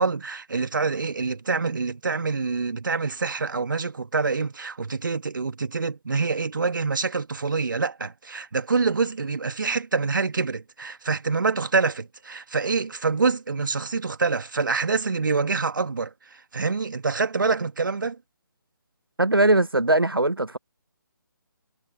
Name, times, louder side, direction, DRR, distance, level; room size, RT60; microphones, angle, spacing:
voice 1, 0.0-18.2, right 4 dB, 60° right, 2.1 m, -26 dB
voice 2, 19.2-20.6, right 2 dB, 90° right, 0.9 m, -20 dB
figure-of-eight pair, 145°, 12 cm